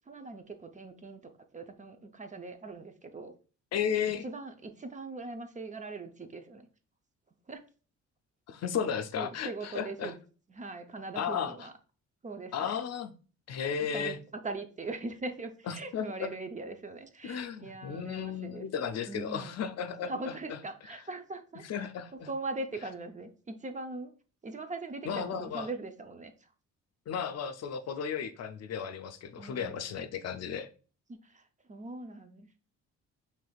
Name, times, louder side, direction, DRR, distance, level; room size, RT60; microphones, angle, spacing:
voice 1, 0.1-1.2 1.5-3.3 4.1-6.7 7.5-7.6 9.2-10.2 10.5-11.7 12.2-12.8 13.9-14.2 14.4-18.7 19.1-19.5 20.0-21.8 22.1-24.1 24.4-26.5 29.4-30.0 31.1-32.6, right 3 dB, 25° right, 0.5 m, -41 dB
voice 2, 3.7-4.2 8.5-10.1 11.2-11.5 12.5-13.1 13.5-14.2 15.7-16.3 17.2-20.3 21.7-22.3 25.1-25.7 27.1-30.7, left 7 dB, 60° left, 0.5 m, -34 dB
4.9 x 3.3 x 2.3 m
cardioid pair, 90°, 30 cm